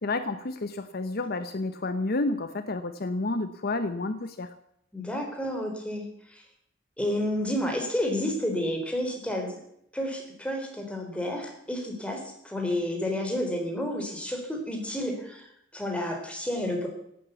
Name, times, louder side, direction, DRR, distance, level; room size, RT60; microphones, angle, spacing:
voice 1, 0.0-4.5, left 2 dB, 55° left, 10 dB, 0.8 m, -30 dB
voice 2, 4.9-6.4 7.0-9.5 9.9-16.9, left 1 dB, 5° left, 2 dB, 4.0 m, -30 dB
17.0 x 9.0 x 8.4 m, 0.73 s
head